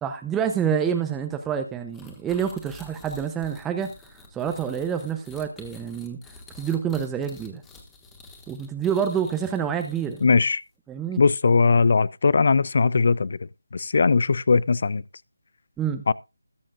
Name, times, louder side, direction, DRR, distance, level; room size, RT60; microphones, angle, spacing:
voice 1, 0.0-3.9 4.3-6.2 6.5-7.6 8.5-10.2 10.9-11.2 15.8-16.0, right 8 dB, 10° right, 0.7 m, -27 dB
sound 1, 1.9-10.4, left 3 dB, 10° left, 2.1 m, -48 dB
voice 2, 10.2-10.6 11.2-13.4 13.7-15.0 16.1-16.2, left 4 dB, 50° left, 0.5 m, -19 dB
21.0 x 7.4 x 2.5 m
figure-of-eight pair, 155°, 0 cm